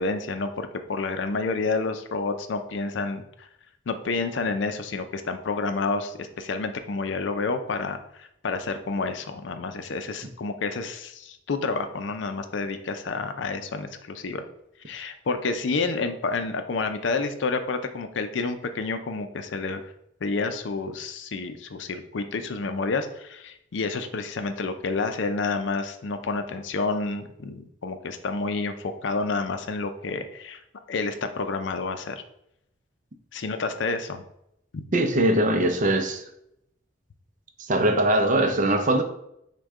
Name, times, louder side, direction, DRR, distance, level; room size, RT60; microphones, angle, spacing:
voice 1, 0.0-3.5 3.9-14.4 14.9-19.9 20.2-30.6 30.9-32.2 33.3-34.2 34.7-34.8, left 3 dB, 70° left, 0.5 m, -29 dB
voice 2, 34.9-36.2 37.7-39.0, right 1 dB, 40° right, 0.5 m, -21 dB
6.2 x 2.2 x 3.6 m
head